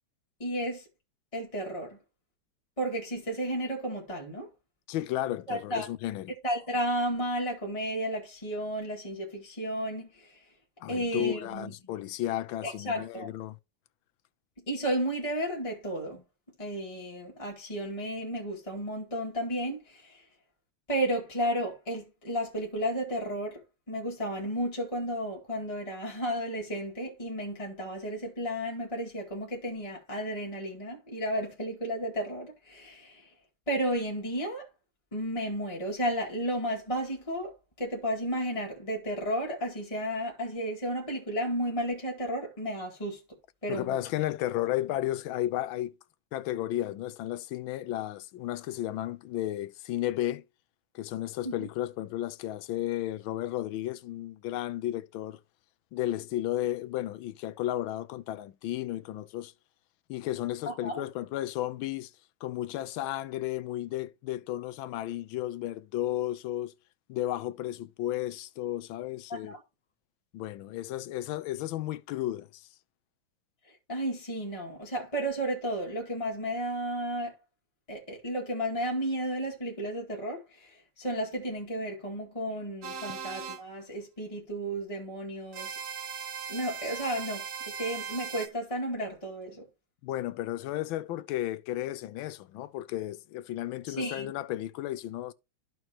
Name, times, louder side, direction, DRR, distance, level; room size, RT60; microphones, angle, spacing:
voice 1, 0.4-0.9 1.3-2.0 2.8-4.5 5.5-5.9 6.4-10.4 10.9-11.7 12.6-13.3 14.7-16.2 16.6-20.2 20.9-23.6 23.9-33.3 33.7-34.7 35.1-37.5 37.8-43.2 43.6-44.0 51.4-51.7 60.7-61.0 69.3-69.6 73.7-77.3 77.9-85.8 86.5-89.6 93.9-94.3, right 1 dB, 15° left, 2.2 m, -33 dB
voice 2, 4.9-6.3 10.8-13.6 43.7-45.9 46.3-50.4 50.9-55.4 55.9-59.5 60.1-62.1 62.4-66.7 67.1-69.6 70.3-72.7 90.0-95.3, left 14 dB, 85° left, 1.4 m, -33 dB
sound 1, 82.8-83.6 85.5-88.5, right 6 dB, 50° right, 0.7 m, -38 dB
13.5 x 4.6 x 2.9 m
omnidirectional pair, 2.2 m